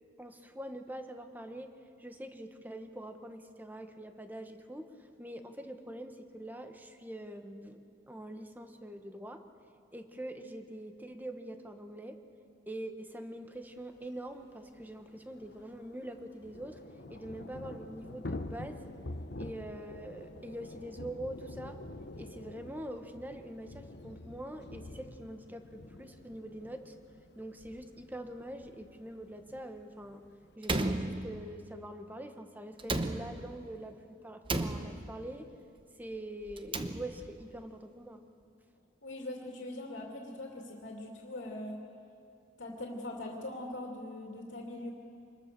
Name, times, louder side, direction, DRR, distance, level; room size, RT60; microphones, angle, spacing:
voice 1, 0.2-1.7 2.0-9.4 9.9-12.2 12.7-16.8 17.1-18.9 19.4-21.8 22.1-26.9 27.3-30.2 30.6-35.5 36.0-38.2, right 1 dB, 10° right, 7 dB, 1.1 m, -44 dB
Thunder / Rain, 14.0-14.1 14.3-14.4 14.7-30.6, left 2 dB, 60° left, 1.0 m, -47 dB
Slam, 30.6-31.8 32.8-33.7 34.5-35.4 36.5-37.4, right 2 dB, 25° right, 0.9 m, -35 dB
voice 2, 39.0-41.8 42.6-44.9, left 1 dB, 85° left, 0 dB, 2.7 m, -41 dB
25.5 x 21.0 x 6.8 m, 2.4 s
head